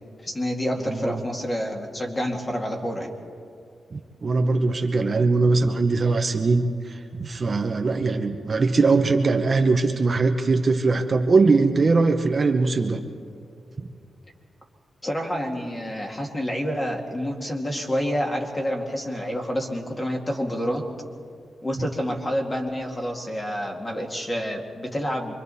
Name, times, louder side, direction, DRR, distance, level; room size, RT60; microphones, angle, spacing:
voice 1, 0.2-3.1 15.0-20.8 21.6-25.3, equal, 20° left, 1 dB, 2.2 m, -28 dB
voice 2, 0.8-1.2 3.9-13.0 13.8-13.9 21.8-21.9, right 3 dB, 35° right, 5 dB, 1.0 m, -21 dB
26.0 x 23.5 x 4.2 m, 2.3 s
wide cardioid pair, 135°, 0 cm